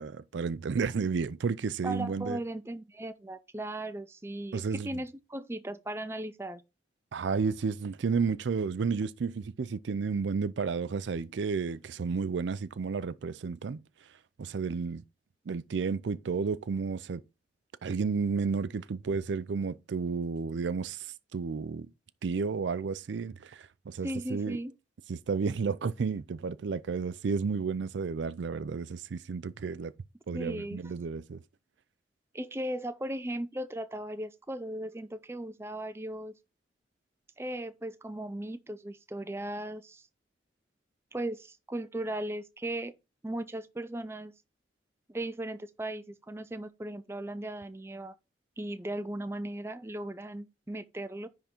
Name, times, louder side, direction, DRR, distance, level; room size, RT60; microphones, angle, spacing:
voice 1, 0.0-2.4 4.5-5.0 7.1-13.8 14.4-15.0 15.5-17.2 17.8-21.1 21.3-21.9 22.2-24.6 25.1-29.9 30.3-31.4, right 5 dB, 75° right, 0.4 m, -32 dB
voice 2, 1.8-6.6 24.0-24.7 30.3-30.8 32.3-36.3 37.4-40.0 41.1-42.9 43.2-44.3 45.1-48.1 48.6-51.3, right 1 dB, 15° right, 0.4 m, -37 dB
10.5 x 3.7 x 4.4 m
head